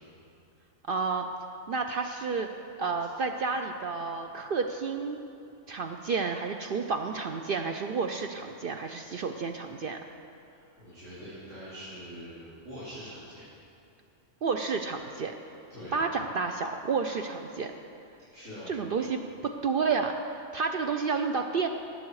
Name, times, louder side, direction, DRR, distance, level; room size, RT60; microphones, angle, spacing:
voice 1, 0.9-1.3 1.7-2.5 2.8-5.2 5.7-10.0 14.4-15.3 15.9-17.7 18.7-20.1 20.5-21.7, right 5 dB, 60° right, 5 dB, 0.7 m, -30 dB
voice 2, 10.5-13.4 15.7-16.0 18.2-18.7, equal, 85° right, -12 dB, 3.8 m, -44 dB
19.0 x 7.8 x 4.7 m, 2.6 s
omnidirectional pair, 1.3 m